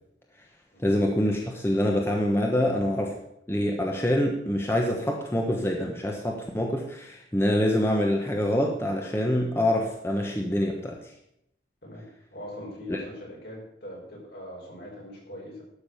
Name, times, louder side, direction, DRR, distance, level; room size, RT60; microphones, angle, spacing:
voice 1, 0.8-3.2 3.5-11.0 12.9-13.0, left 1 dB, 15° left, 1 dB, 1.1 m, -25 dB
voice 2, 11.8-15.6, left 1 dB, 65° left, -3 dB, 5.1 m, -41 dB
12.0 x 6.2 x 6.9 m, 0.75 s
head